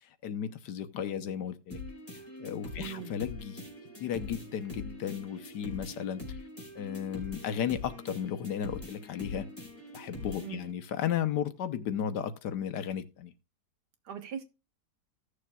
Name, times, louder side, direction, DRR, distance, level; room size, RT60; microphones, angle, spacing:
voice 1, 0.2-1.8 2.4-3.6 4.0-6.4 6.8-9.5 9.9-13.3, left 9 dB, 80° left, 1.5 m, -34 dB
sound 1, 1.7-10.7, left 2 dB, 5° left, 3.5 m, -44 dB
voice 2, 2.7-3.1 10.4-10.6 14.0-14.4, right 8 dB, 75° right, 1.7 m, -41 dB
16.0 x 6.6 x 2.3 m
omnidirectional pair, 1.8 m